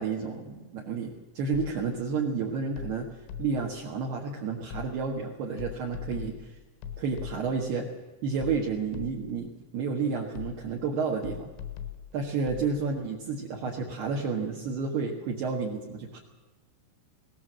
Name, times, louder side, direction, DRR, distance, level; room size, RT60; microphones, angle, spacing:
voice 1, 0.0-3.1 3.4-6.6 7.0-7.9 8.2-11.5 12.1-16.2, right 5 dB, 60° right, -2 dB, 3.3 m, -31 dB
sound 1, 1.5-2.1 2.8-3.8 4.7-5.2 5.6-7.7 8.4-9.5 10.4-10.9 11.2-12.7, left 9 dB, 85° left, 4.3 m, -41 dB
20.5 x 18.5 x 7.6 m, 1.2 s
omnidirectional pair, 5.9 m